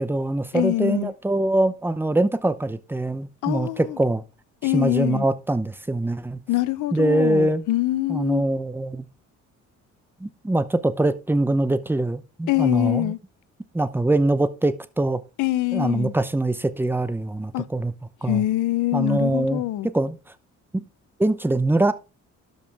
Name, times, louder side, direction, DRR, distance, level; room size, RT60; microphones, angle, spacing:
voice 1, 0.0-4.2 4.6-6.4 6.9-7.6 8.1-9.1 10.2-13.1 13.7-15.2 15.7-17.9 18.2-18.4 18.9-19.6 19.9-20.2 20.7-20.8 21.2-21.9, right 2 dB, 5° right, 0.7 m, -23 dB
voice 2, 0.5-1.1 3.4-4.0 4.6-5.2 6.5-8.4 12.5-13.2 15.4-16.1 17.5-17.6 18.3-19.9, left 16 dB, 90° left, 0.7 m, -24 dB
12.0 x 5.4 x 3.4 m
cardioid pair, 90°, 30 cm